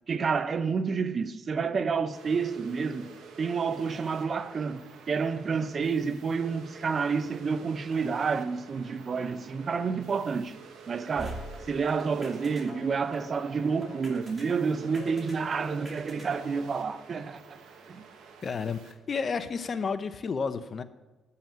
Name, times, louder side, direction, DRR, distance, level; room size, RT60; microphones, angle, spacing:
voice 1, 0.1-3.1 3.4-10.6 10.9-11.4 11.7-17.4 17.9-18.0, right 5 dB, 45° right, 0.6 m, -29 dB
sound 1, 2.1-18.9, right 5 dB, 80° right, 1.3 m, -50 dB
sound 2, 11.2-16.6, equal, 15° right, 2.4 m, -44 dB
voice 2, 18.4-20.8, left 5 dB, 45° left, 0.6 m, -31 dB
8.8 x 5.7 x 7.6 m
cardioid pair, 90°, 0 cm